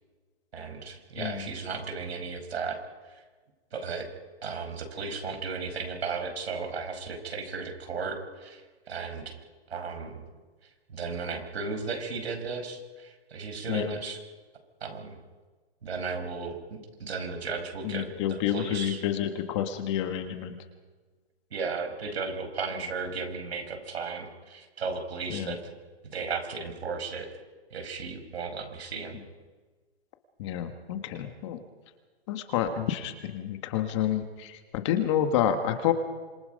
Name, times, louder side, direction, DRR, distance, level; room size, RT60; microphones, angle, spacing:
voice 1, 0.5-2.8 3.1-3.2 3.7-4.1 4.4-9.4 9.7-10.2 10.9-14.2 14.8-15.2 15.8-19.0 21.5-25.7 26.0-27.3 27.7-29.2, right 4 dB, 75° right, 6 dB, 5.8 m, -35 dB
voice 2, 1.2-1.5 13.7-14.0 17.8-20.6 25.3-25.6 30.4-31.6 32.3-35.9, left 10 dB, 30° left, 7 dB, 1.6 m, -29 dB
26.5 x 25.0 x 5.3 m, 1.4 s
hypercardioid pair, 165°, 32 cm